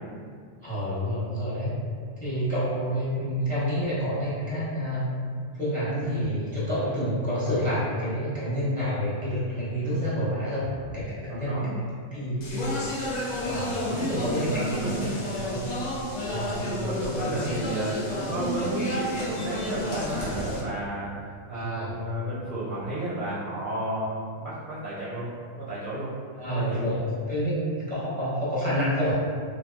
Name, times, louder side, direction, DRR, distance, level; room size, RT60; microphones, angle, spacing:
voice 1, 0.6-1.7 2.2-5.1 5.5-11.6 12.1-12.5 13.4-13.8 14.1-15.1 15.5-15.7 16.3-16.5 17.2-17.6 21.5-21.9 26.4-29.1, equal, 10° left, -10 dB, 0.6 m, -28 dB
voice 2, 11.3-11.8 13.8-15.0 16.5-21.1 21.5-25.3 25.6-26.1 26.4-26.8, right 1 dB, 55° right, -10 dB, 0.6 m, -32 dB
Speech, 12.4-20.6, left 1 dB, 60° left, 0.4 m, -31 dB
2.9 x 2.7 x 2.2 m, 2.1 s
omnidirectional pair, 1.2 m